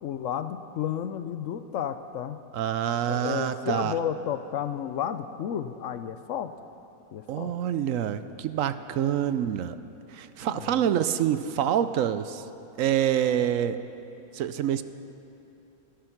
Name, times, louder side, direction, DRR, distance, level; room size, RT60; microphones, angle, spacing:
voice 1, 0.0-2.4 3.0-6.5 7.1-7.5 10.4-10.8, left 9 dB, 65° left, 11 dB, 0.9 m, -32 dB
voice 2, 2.5-4.0 7.3-9.8 10.1-12.4 12.8-13.8 14.3-14.8, right 10 dB, 70° right, 12 dB, 0.9 m, -26 dB
17.5 x 12.5 x 5.8 m, 3.0 s
omnidirectional pair, 1.5 m